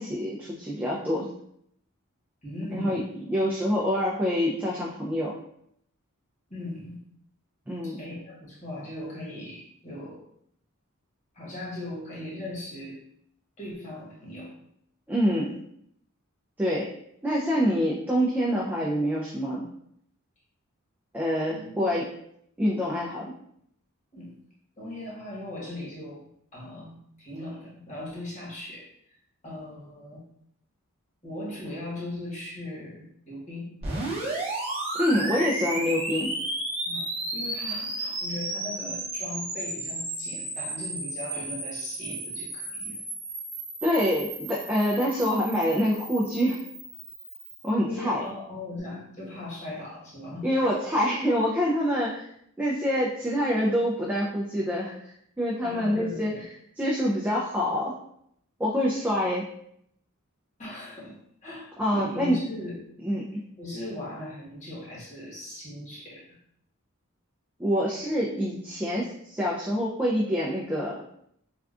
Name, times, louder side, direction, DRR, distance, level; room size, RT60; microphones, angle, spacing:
voice 1, 0.0-1.3 2.7-5.3 7.7-8.0 15.1-15.6 16.6-16.9 17.2-19.6 21.1-22.0 22.6-23.3 35.0-36.3 43.8-46.6 47.6-48.2 50.4-52.3 52.6-56.3 56.8-57.9 58.6-59.4 61.8-62.4 63.0-63.2 67.6-71.0, equal, 10° right, -5 dB, 0.3 m, -26 dB
voice 2, 2.4-3.0 6.5-7.0 7.8-10.2 11.3-13.0 13.6-14.6 19.5-19.7 21.5-21.9 24.1-24.3 24.8-29.1 29.4-30.2 31.2-33.7 36.8-37.1 37.3-43.0 47.8-50.5 55.6-56.5 60.6-62.8 63.6-66.4, left 1 dB, 35° left, -6 dB, 1.1 m, -38 dB
sound 1, 33.8-47.7, right 2 dB, 25° right, 0.7 m, -33 dB
3.5 x 2.3 x 2.4 m, 0.71 s
head